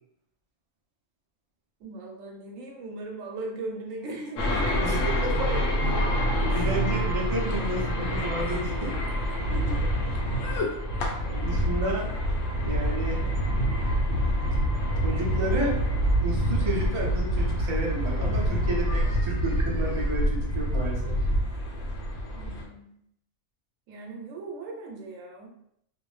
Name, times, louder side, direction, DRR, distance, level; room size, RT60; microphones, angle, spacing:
voice 1, 1.8-5.2 6.5-6.7 9.5-9.8 10.9-11.8 22.3-23.0 23.9-25.5, right 2 dB, 85° right, 1 dB, 1.0 m, -39 dB
sound 1, 4.4-22.6, equal, 80° left, 0.9 m, -26 dB
voice 2, 6.5-8.9 11.2-12.1 12.6-13.2 15.0-15.7 16.2-21.2, right 2 dB, 40° right, -2 dB, 0.4 m, -31 dB
2.5 x 2.0 x 3.1 m, 0.73 s
omnidirectional pair, 1.3 m